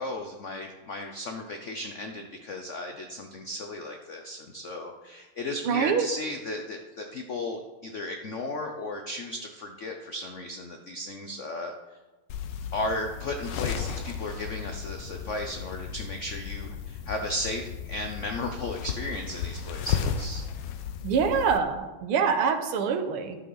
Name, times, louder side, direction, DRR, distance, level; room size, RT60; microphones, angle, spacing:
voice 1, 0.0-11.7 12.7-20.4, left 1 dB, 90° left, 4 dB, 0.6 m, -35 dB
voice 2, 5.7-6.1 21.0-23.4, right 6 dB, 85° right, 7 dB, 1.8 m, -25 dB
sound 1, 12.3-21.6, left 7 dB, 70° left, 1.2 m, -34 dB
11.5 x 7.5 x 3.9 m, 1.2 s
omnidirectional pair, 2.4 m